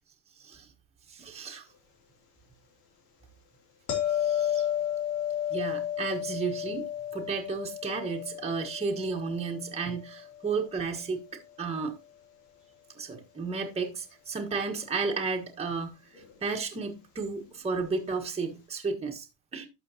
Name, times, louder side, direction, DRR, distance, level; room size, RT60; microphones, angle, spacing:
voice 1, 1.1-1.7 4.1-4.7 5.5-6.9 7.1-11.2 11.6-11.9 12.9-15.9 16.4-19.3 19.5-19.7, right 4 dB, 15° right, 1.4 m, -33 dB
sound 1, 3.9-10.9 16.1-16.3, left 10 dB, 90° left, 3.1 m, -33 dB
12.0 x 6.3 x 2.9 m
supercardioid pair, 130°, 46 cm